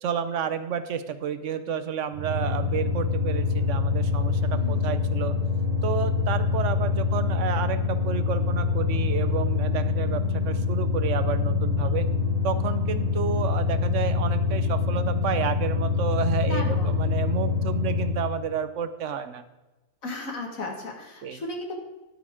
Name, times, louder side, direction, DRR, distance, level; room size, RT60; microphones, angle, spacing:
voice 1, 0.0-5.4 5.8-12.1 12.4-19.4 21.2-21.4, right 7 dB, 70° right, 12 dB, 1.0 m, -30 dB
sound 1, 2.2-18.3, left 4 dB, 35° right, 0.8 m, -25 dB
voice 2, 4.5-4.9 16.5-16.9 20.0-21.9, left 2 dB, 80° left, 2 dB, 2.2 m, -35 dB
11.5 x 8.7 x 3.6 m, 1.1 s
omnidirectional pair, 1.4 m